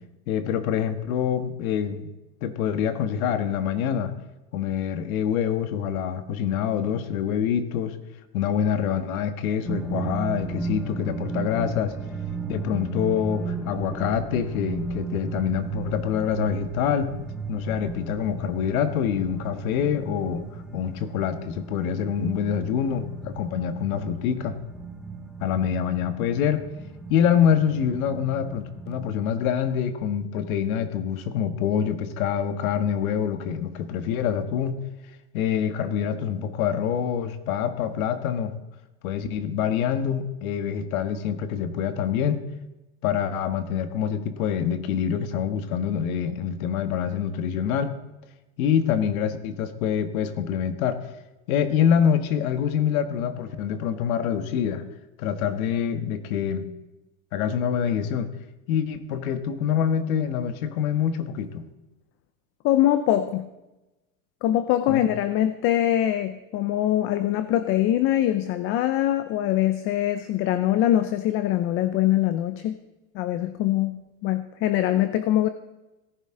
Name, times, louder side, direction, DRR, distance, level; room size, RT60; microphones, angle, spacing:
voice 1, 0.3-2.1 2.4-4.1 4.5-8.0 8.3-11.9 12.5-17.1 17.5-20.4 20.7-24.6 25.4-26.6 27.1-34.8 35.3-38.5 39.0-42.4 43.0-47.9 48.6-51.0 51.5-54.8 55.2-56.7 57.3-58.3 58.7-61.6 64.9-65.0, left 8 dB, 70° left, 9 dB, 1.6 m, -25 dB
sound 1, 9.6-29.1, right 5 dB, ahead, 1.0 m, -35 dB
voice 2, 62.6-63.5 64.4-72.8 73.1-75.5, left 12 dB, 30° left, 11 dB, 0.5 m, -23 dB
18.0 x 10.5 x 3.8 m, 1.0 s
supercardioid pair, 150°, 44 cm